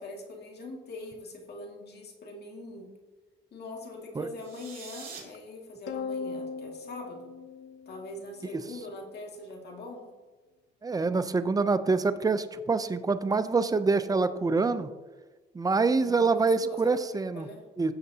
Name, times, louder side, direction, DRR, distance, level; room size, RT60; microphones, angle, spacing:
voice 1, 0.0-2.9 3.5-7.3 7.9-10.1 16.0-17.6, left 2 dB, 55° left, 0 dB, 2.1 m, -42 dB
sound 1, 4.3-5.2, right 5 dB, 45° right, 2.8 m, -44 dB
sound 2, 5.9-8.5, left 5 dB, 75° left, 0.6 m, -38 dB
voice 2, 10.8-14.9 15.5-17.5 17.8-17.9, right 4 dB, 20° right, 11 dB, 0.5 m, -26 dB
15.5 x 6.5 x 2.8 m, 1.3 s
cardioid pair, 90°, 20 cm